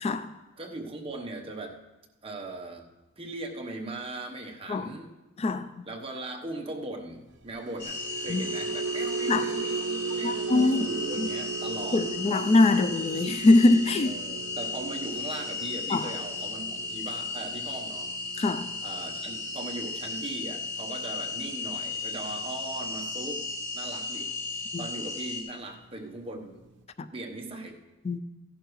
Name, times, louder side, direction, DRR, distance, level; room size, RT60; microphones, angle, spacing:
voice 1, 0.6-1.8 2.2-2.9 3.2-5.1 5.8-12.0 14.0-18.1 18.8-23.4 23.7-24.3 24.8-26.6 27.1-27.8, right 2 dB, 30° right, 1.0 m, -39 dB
sound 1, 7.5-23.9 24.2-24.5 24.9-25.1, right 5 dB, 60° right, 0.9 m, -38 dB
sound 2, 7.8-25.4, left 3 dB, 60° left, 2.7 m, -35 dB
voice 2, 10.2-10.9 11.2-11.3 11.9-14.1 15.9-16.1 18.4-18.7 24.7-24.8 28.1-28.2, left 2 dB, 30° left, 0.3 m, -22 dB
15.0 x 11.0 x 3.1 m
head